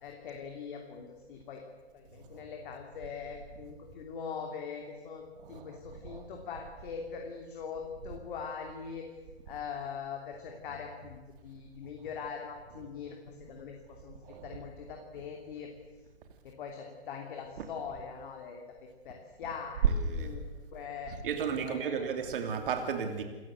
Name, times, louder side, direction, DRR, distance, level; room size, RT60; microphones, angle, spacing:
voice 1, 0.0-1.6 1.9-5.2 5.5-9.1 9.5-15.7 16.4-19.9 20.1-21.1 21.6-22.1, left 6 dB, 50° left, 2 dB, 3.0 m, -42 dB
voice 2, 19.8-20.4 21.2-23.2, right 6 dB, 55° right, 6 dB, 2.9 m, -32 dB
28.0 x 15.0 x 8.0 m, 1.3 s
hypercardioid pair, 125°, 33 cm